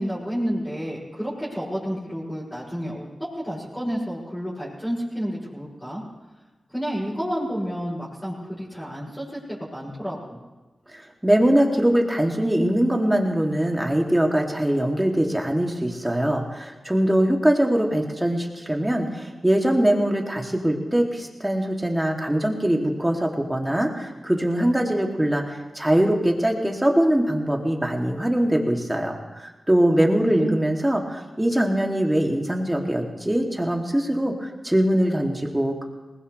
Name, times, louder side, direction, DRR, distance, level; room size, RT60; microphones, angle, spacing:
voice 1, 0.0-3.1 3.4-6.0 6.7-10.4 29.8-30.6, equal, 10° left, -9 dB, 7.3 m, -30 dB
voice 2, 10.9-35.8, right 1 dB, 15° right, 1 dB, 3.0 m, -22 dB
20.5 x 19.5 x 3.5 m, 1.2 s
cardioid pair, 50°, 0 cm